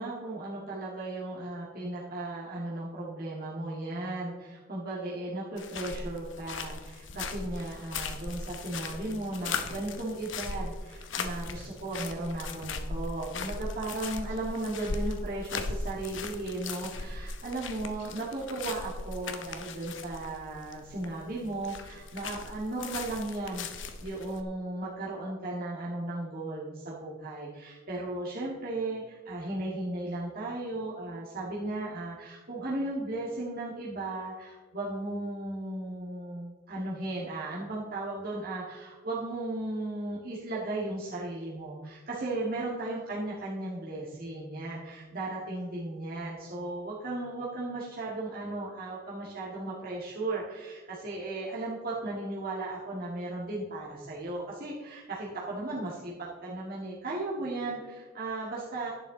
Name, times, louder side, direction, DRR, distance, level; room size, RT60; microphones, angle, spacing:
voice 1, 0.0-58.9, right 2 dB, 45° right, -7 dB, 2.0 m, -36 dB
sound 1, 5.6-24.4, left 4 dB, 65° left, 0.9 m, -38 dB
11.0 x 9.9 x 3.9 m, 1.3 s
head